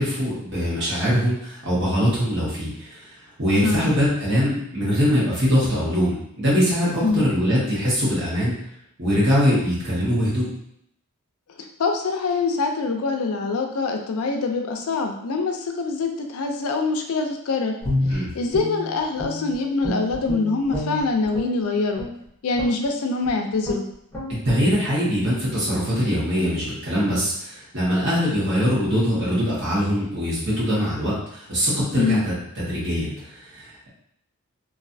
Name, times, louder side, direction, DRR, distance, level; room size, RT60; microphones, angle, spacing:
voice 1, 0.0-3.1 3.4-8.5 9.0-10.5 18.1-18.3 24.4-33.9, equal, 55° right, -8 dB, 1.4 m, -22 dB
voice 2, 11.8-17.7 18.1-22.0 22.4-23.8 32.0-32.2, left 3 dB, 75° left, 4 dB, 0.4 m, -24 dB
Guitar, 17.8-19.5 19.8-21.5 21.9-22.2 22.6-22.8 23.2-23.4 23.6-23.8 24.1-24.3, left 1 dB, 5° left, 1.0 m, -28 dB
3.0 x 2.6 x 2.6 m, 0.73 s
head